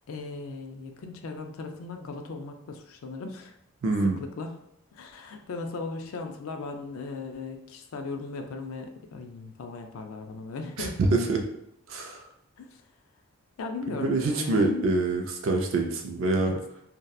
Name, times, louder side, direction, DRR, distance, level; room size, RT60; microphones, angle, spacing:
voice 1, 0.1-3.5 4.0-4.6 4.9-11.0 12.6-12.8 13.6-14.8 16.4-16.6, left 3 dB, 70° left, 5 dB, 0.4 m, -37 dB
voice 2, 3.8-4.2 10.8-11.4 11.9-12.2 13.9-16.6, right 3 dB, 60° right, 2 dB, 0.3 m, -25 dB
2.6 x 2.1 x 2.3 m, 0.79 s
head